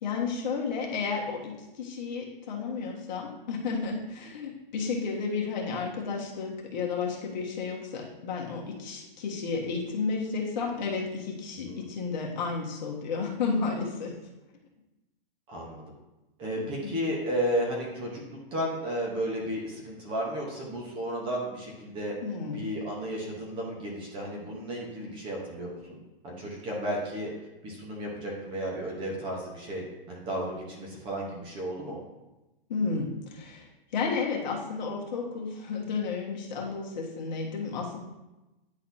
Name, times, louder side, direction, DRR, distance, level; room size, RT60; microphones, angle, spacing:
voice 1, 0.0-14.1 16.6-16.9 22.2-22.6 32.7-33.7 33.9-38.0, left 4 dB, 50° left, -2 dB, 1.5 m, -32 dB
voice 2, 15.5-15.8 16.4-22.2 22.5-26.0 26.2-27.3 27.6-32.0, equal, 15° right, -2 dB, 0.9 m, -33 dB
9.8 x 4.1 x 2.7 m, 1.0 s
hypercardioid pair, 160°, 29 cm